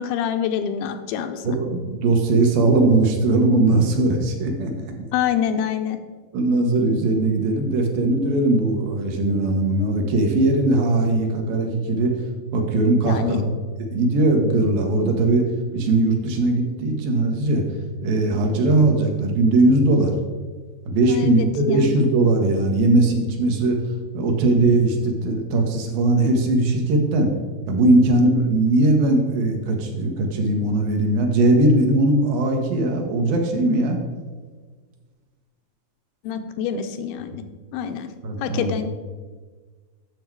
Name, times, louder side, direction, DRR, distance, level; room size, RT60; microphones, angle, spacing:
voice 1, 0.0-1.5 5.1-6.0 13.1-13.4 21.0-22.0 36.2-37.4 37.7-38.1 38.4-38.9, left 8 dB, 85° left, 7 dB, 2.4 m, -26 dB
voice 2, 1.4-4.9 6.3-12.2 12.5-13.5 13.9-17.7 18.0-20.1 20.9-23.8 24.1-27.3 27.7-34.0 38.2-38.7, right 2 dB, 70° right, 2 dB, 2.8 m, -19 dB
10.0 x 7.0 x 4.6 m, 1.4 s
omnidirectional pair, 4.4 m